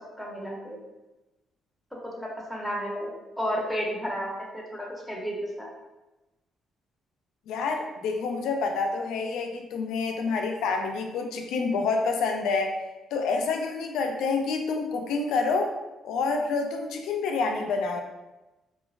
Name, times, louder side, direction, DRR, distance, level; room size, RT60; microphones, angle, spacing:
voice 1, 0.2-0.8 2.0-3.1 3.4-5.7, equal, 5° left, -3 dB, 0.7 m, -32 dB
voice 2, 7.5-12.8 13.1-15.7 16.0-18.0, left 4 dB, 85° left, 3 dB, 0.3 m, -28 dB
3.0 x 2.2 x 2.3 m, 1.0 s
cardioid pair, 90°, 0 cm